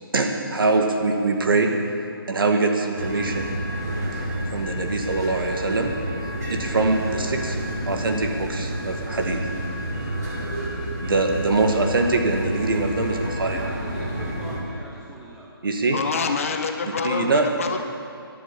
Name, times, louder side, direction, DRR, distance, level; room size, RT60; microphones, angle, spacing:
voice 1, 0.1-1.7 2.3-3.5 4.5-5.9 6.5-7.6 7.9-9.4 11.0-13.6 15.6-16.0 17.0-17.4, right 3 dB, 65° right, 3 dB, 2.0 m, -23 dB
sound 1, 2.9-14.6, right 1 dB, 45° right, 4.1 m, -29 dB
voice 2, 13.5-15.5, right 1 dB, ahead, -5 dB, 0.4 m, -41 dB
voice 3, 15.9-17.8, left 5 dB, 35° left, 6 dB, 1.0 m, -26 dB
12.5 x 11.0 x 8.5 m, 2.5 s
hypercardioid pair, 170°, 13 cm